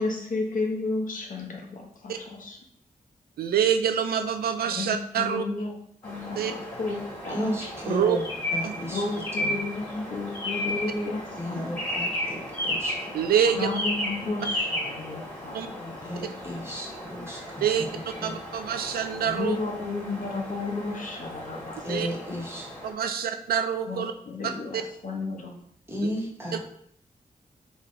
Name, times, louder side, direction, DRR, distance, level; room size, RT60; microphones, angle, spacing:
voice 1, 0.0-2.6 4.6-5.8 6.0-7.5 8.9-11.8 13.5-16.6 19.2-21.8 23.9-25.5, left 3 dB, 60° left, 1 dB, 0.9 m, -33 dB
voice 2, 3.4-5.4 6.4-6.5 7.9-8.2 8.6-8.7 13.1-13.7 15.5-15.7 17.6-17.9 18.2-19.6 21.9-22.1 22.8-24.1 24.7-24.8 26.5-26.6, right 8 dB, 90° right, 7 dB, 0.4 m, -26 dB
sound 1, 6.0-22.9, left 1 dB, 10° left, 1.6 m, -34 dB
voice 3, 7.3-8.2 8.5-9.1 9.4-9.5 11.4-13.0 16.0-18.4 21.8-22.8 23.1-23.3 25.9-26.6, equal, 15° right, -2 dB, 1.2 m, -34 dB
3.7 x 3.1 x 3.2 m, 0.67 s
cardioid pair, 85°, 15 cm